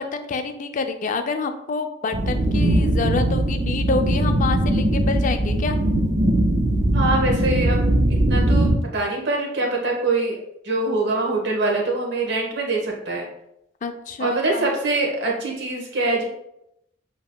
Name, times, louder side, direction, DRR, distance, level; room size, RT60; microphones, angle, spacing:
voice 1, 0.0-5.8 13.8-14.7, left 4 dB, 40° left, 7 dB, 0.4 m, -27 dB
sound 1, 2.1-8.8, right 1 dB, 40° right, 0.5 m, -20 dB
voice 2, 6.9-7.8 8.3-10.4 10.6-13.3 14.2-16.2, right 2 dB, 60° right, -1 dB, 1.1 m, -24 dB
7.0 x 2.8 x 2.2 m, 0.80 s
head